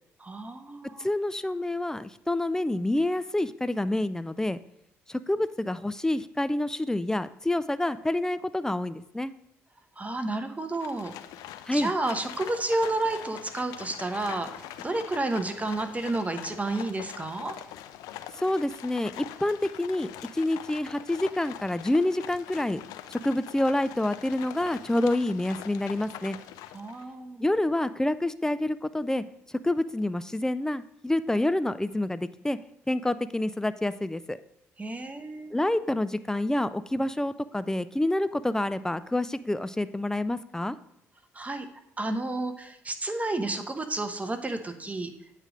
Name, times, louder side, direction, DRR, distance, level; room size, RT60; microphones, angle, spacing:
voice 1, 0.2-1.1 10.0-11.1 11.7-14.5 14.8-17.6 26.7-27.4 34.8-35.5 41.3-41.7 42.0-45.1, right 2 dB, 20° right, 7 dB, 0.9 m, -31 dB
voice 2, 1.0-4.6 5.1-9.3 11.7-11.9 18.4-20.1 20.3-22.8 23.2-26.4 27.4-32.6 32.9-34.4 35.5-40.8, left 1 dB, 10° left, 14 dB, 0.4 m, -28 dB
Livestock farm animals working animals, 10.7-27.1, left 12 dB, 80° left, 0.4 m, -43 dB
8.8 x 3.3 x 5.0 m, 0.74 s
hypercardioid pair, 60°, 6 cm